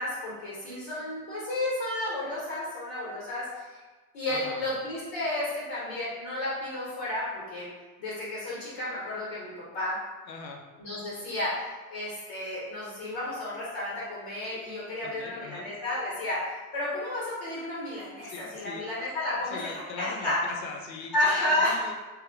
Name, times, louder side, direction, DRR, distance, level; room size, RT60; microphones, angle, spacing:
voice 1, 0.0-3.8 4.1-7.7 8.0-10.0 10.8-11.6 11.9-20.4 21.1-21.8, left 1 dB, 55° left, -6 dB, 1.3 m, -32 dB
voice 2, 4.3-4.6 10.3-10.6 15.0-15.7 18.2-18.9 19.5-21.9, left 4 dB, 85° left, 2 dB, 0.6 m, -41 dB
3.2 x 3.1 x 3.4 m, 1.3 s
figure-of-eight pair, 55°, 50 cm